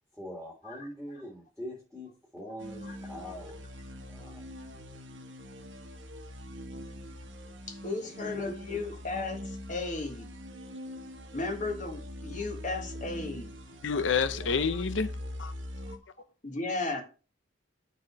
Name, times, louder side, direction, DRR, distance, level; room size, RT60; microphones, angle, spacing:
voice 1, 0.2-3.6 4.1-4.5 8.0-8.8 14.3-14.5, equal, ahead, 1.9 m, -43 dB
sound 1, 2.6-16.0, left 1 dB, 80° right, 1.3 m, -42 dB
voice 2, 7.7-10.3 11.3-13.5 15.9-16.0 16.4-17.0, left 3 dB, 45° left, 1.6 m, -35 dB
voice 3, 13.8-15.1 15.4-15.5, left 5 dB, 80° left, 0.7 m, -28 dB
6.1 x 4.8 x 6.2 m
head